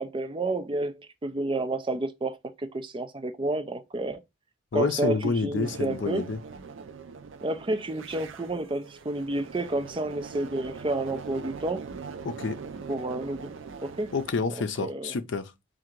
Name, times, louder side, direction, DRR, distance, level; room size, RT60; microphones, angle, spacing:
voice 1, 0.0-4.2 4.7-6.3 7.4-11.8 12.9-13.5 13.8-14.1 14.5-15.1, right 2 dB, 25° right, 0.4 m, -30 dB
voice 2, 4.7-6.4 12.2-12.6 14.1-15.5, left 4 dB, 70° left, 0.5 m, -28 dB
sound 1, 5.6-14.3, right 5 dB, 80° right, 0.5 m, -42 dB
3.8 x 2.5 x 4.4 m
head